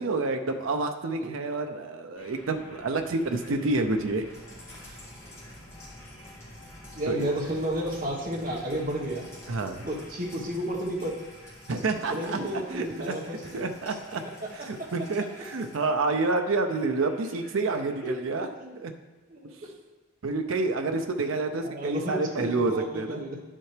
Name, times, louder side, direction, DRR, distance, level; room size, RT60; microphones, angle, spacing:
voice 1, 0.0-4.3 7.1-7.3 9.5-9.8 11.7-13.1 13.5-14.2 14.7-18.5 18.8-18.9 20.2-23.2, right 3 dB, 80° right, 5 dB, 0.6 m, -28 dB
sound 1, 2.2-18.2, equal, 30° left, 2.5 m, -50 dB
sound 2, 4.3-15.8, left 2 dB, 15° left, 1.9 m, -51 dB
voice 2, 7.0-9.3 9.8-11.1 12.1-13.7 14.4-15.1 18.0-18.1 18.6-18.8 19.3-19.7 21.6-23.4, right 1 dB, 40° right, -1 dB, 1.3 m, -32 dB
10.5 x 7.4 x 3.3 m, 1.2 s
head